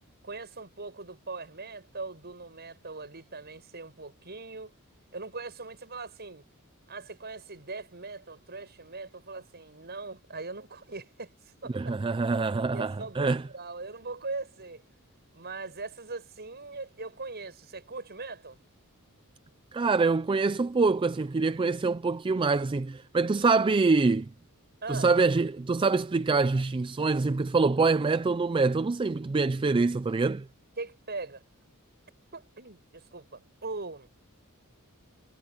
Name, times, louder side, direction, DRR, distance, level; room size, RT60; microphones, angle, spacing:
voice 1, 0.2-4.7 5.1-6.4 6.9-12.0 12.7-14.8 15.3-18.6 24.8-25.1 30.8-31.4 32.3-34.1, right 3 dB, 50° right, 7.9 m, -40 dB
voice 2, 11.7-13.4 19.7-24.3 24.9-30.5, right 4 dB, 25° right, 0.4 m, -25 dB
head